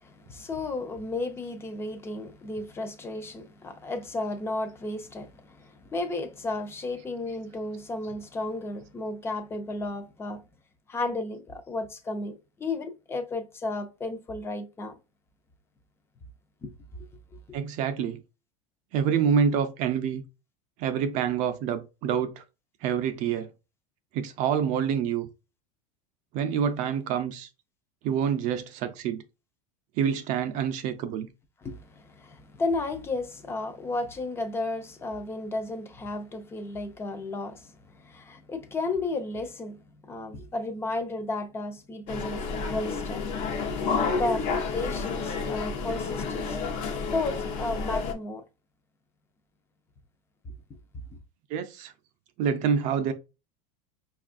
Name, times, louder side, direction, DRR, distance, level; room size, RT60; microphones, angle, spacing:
voice 1, 0.0-10.4 10.9-15.0 16.6-16.7 31.6-42.4 42.7-43.2 44.1-44.5 44.7-46.8 47.1-48.4, left 2 dB, 15° left, 0.5 m, -33 dB
voice 2, 17.5-18.2 18.9-20.2 20.8-22.4 22.8-23.5 24.1-25.3 26.3-27.5 28.0-29.2 30.0-31.3 51.5-51.9 52.4-53.1, right 7 dB, 45° right, 0.5 m, -27 dB
sound 1, 42.1-48.1, left 4 dB, 45° left, 0.7 m, -30 dB
5.1 x 2.4 x 2.4 m
supercardioid pair, 150°, 18 cm